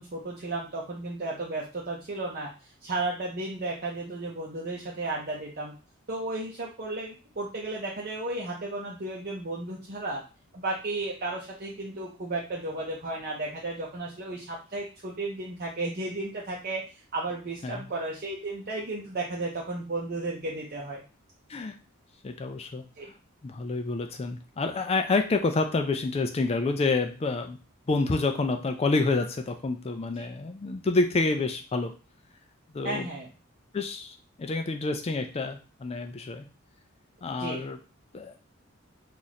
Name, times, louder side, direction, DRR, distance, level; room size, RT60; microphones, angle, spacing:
voice 1, 0.0-2.5 2.8-5.7 6.1-10.2 10.5-21.0 23.0-23.1 32.8-33.3 37.4-37.6, right 2 dB, 45° right, -4 dB, 0.7 m, -34 dB
voice 2, 22.2-22.8 23.4-27.6 27.9-31.9 32.7-33.1 33.7-36.5 37.2-37.8 38.1-38.3, left 3 dB, 30° left, 6 dB, 0.4 m, -28 dB
2.9 x 2.5 x 4.0 m, 0.33 s
head